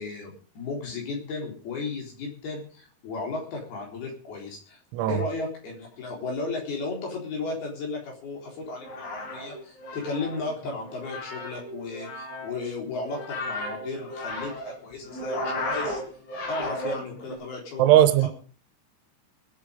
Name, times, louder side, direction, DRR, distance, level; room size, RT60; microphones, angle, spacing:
voice 1, 0.0-4.8 5.1-16.0 16.5-18.3, left 3 dB, 55° left, 5.6 m, -34 dB
sound 1, 8.7-17.4, left 1 dB, 85° left, 8.9 m, -35 dB
voice 2, 17.8-18.3, right 12 dB, 90° right, 3.3 m, -18 dB
20.5 x 8.5 x 5.2 m
omnidirectional pair, 5.4 m